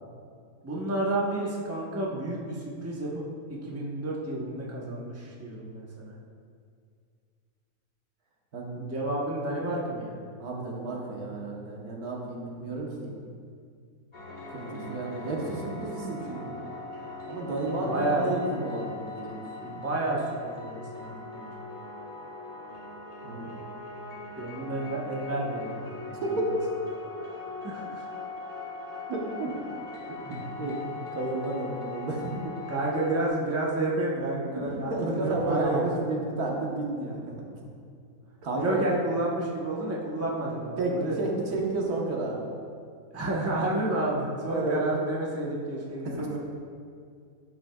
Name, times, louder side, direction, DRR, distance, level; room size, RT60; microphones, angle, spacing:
voice 1, 0.6-3.2 3.5-6.1 8.8-10.2 14.6-15.1 17.6-18.3 19.6-21.5 24.4-25.9 26.2-26.4 27.6-28.0 32.7-35.9 38.6-41.2 43.1-46.4, right 2 dB, 10° right, -4 dB, 0.9 m, -30 dB
voice 2, 8.5-8.9 10.4-13.1 14.5-16.6 17.3-19.8 23.2-23.6 26.1-26.6 29.1-29.5 30.2-30.8 31.1-32.4 34.7-37.7 38.4-38.9 40.8-42.5 43.3-43.4 44.5-44.8 46.0-46.3, right 2 dB, 80° right, -2 dB, 1.7 m, -32 dB
sound 1, 14.1-33.3, left 3 dB, 35° left, 1.3 m, -41 dB
13.0 x 6.2 x 2.3 m, 2.2 s
omnidirectional pair, 1.6 m